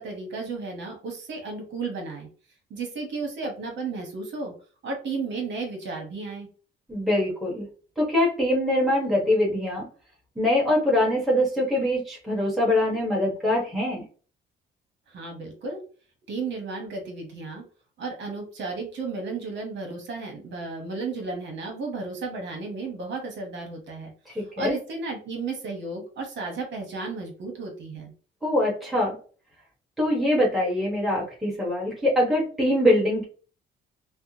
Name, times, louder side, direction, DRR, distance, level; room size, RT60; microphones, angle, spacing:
voice 1, 0.0-2.3 2.7-4.5 4.8-6.5 15.1-15.8 16.3-17.6 18.0-24.1 24.6-28.1, right 3 dB, 65° right, 2 dB, 1.1 m, -33 dB
voice 2, 6.9-7.7 8.0-9.9 10.4-14.0 24.3-24.7 28.4-29.2 30.0-33.3, left 1 dB, ahead, -4 dB, 1.3 m, -23 dB
3.4 x 2.1 x 2.8 m, 0.40 s
cardioid pair, 90°, 20 cm